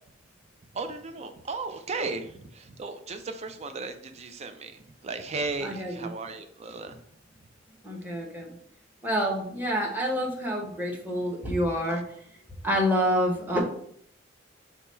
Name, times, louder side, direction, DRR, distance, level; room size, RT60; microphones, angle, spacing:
voice 1, 0.7-7.0, right 3 dB, 35° right, 8 dB, 0.4 m, -35 dB
voice 2, 5.6-6.1 7.8-8.5 9.0-12.2 12.6-13.6, equal, 10° right, -1 dB, 1.0 m, -27 dB
4.9 x 2.3 x 4.3 m, 0.66 s
head